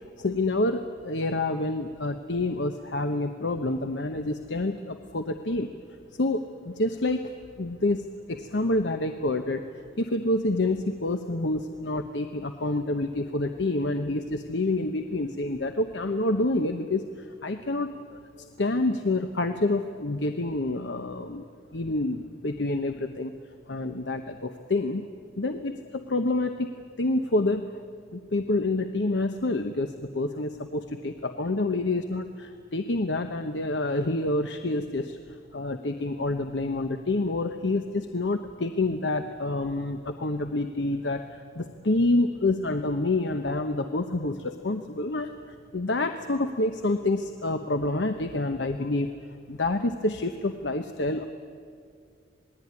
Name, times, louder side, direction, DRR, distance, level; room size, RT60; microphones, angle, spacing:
voice 1, 0.2-5.7 6.1-7.3 7.6-21.5 21.7-23.3 23.7-25.0 25.4-26.7 27.0-27.7 28.1-45.3 45.7-49.1 49.5-51.3, left 2 dB, 85° left, 7 dB, 1.0 m, -28 dB
27.0 x 19.5 x 9.7 m, 2.2 s
head